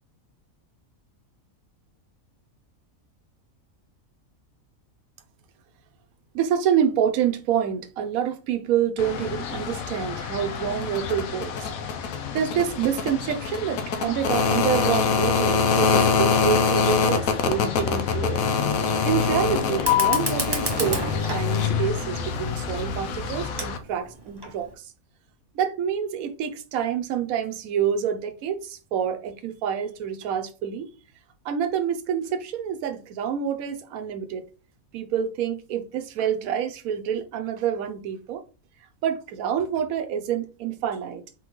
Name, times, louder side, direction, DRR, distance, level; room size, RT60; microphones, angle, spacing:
voice 1, 6.3-11.7 12.3-18.4 19.0-24.9 25.5-30.9 31.4-34.5 34.9-38.4 39.0-41.2, right 8 dB, 85° right, 1.1 m, -27 dB
sound 1, 9.0-23.8, left 6 dB, 85° left, 1.1 m, -25 dB
Fire, 19.7-24.7, right 3 dB, 25° right, 0.6 m, -33 dB
4.2 x 3.8 x 3.0 m
omnidirectional pair, 1.4 m